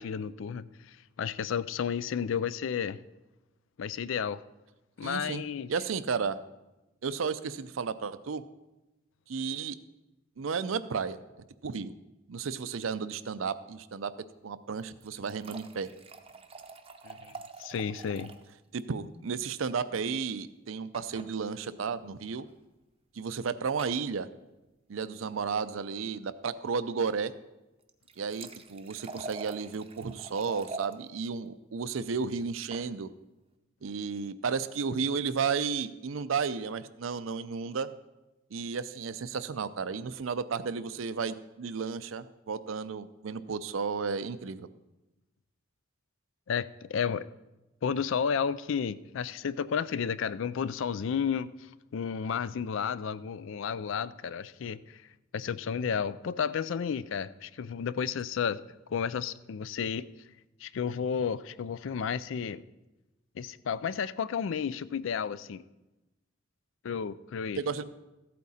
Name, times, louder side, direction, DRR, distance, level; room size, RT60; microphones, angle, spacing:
voice 1, 0.0-3.0 3.8-4.4 5.0-5.7 17.0-17.3 17.6-18.4 46.5-47.3 47.8-55.0 55.3-58.6 58.9-60.1 60.6-62.6 63.4-65.6 66.8-67.6, left 7 dB, 65° left, 17 dB, 0.4 m, -32 dB
voice 2, 5.0-5.4 5.7-6.4 7.0-8.4 9.3-9.8 10.4-11.2 11.6-11.9 12.3-14.1 14.4-15.9 18.7-22.5 23.1-24.3 24.9-27.3 28.2-33.1 33.8-37.9 38.5-44.7 67.6-67.8, right 5 dB, 75° right, 13 dB, 0.5 m, -33 dB
sound 1, 14.8-18.5 18.8-18.9 19.1-19.2 20.9-21.3 22.3-22.4 23.8-24.1 27.8-30.9 32.4-32.9, right 3 dB, 30° right, 0.7 m, -45 dB
14.0 x 8.5 x 4.2 m, 1.0 s
head